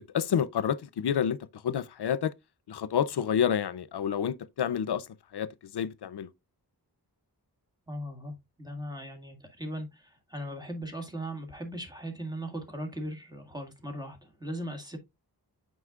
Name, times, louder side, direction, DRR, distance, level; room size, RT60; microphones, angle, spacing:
voice 1, 0.0-2.3 2.7-5.1 5.3-6.3, left 8 dB, 80° left, 0.6 m, -29 dB
voice 2, 7.9-8.3 8.6-15.0, equal, 10° right, 1.8 m, -38 dB
7.9 x 5.2 x 2.4 m
wide cardioid pair, 65°, 39 cm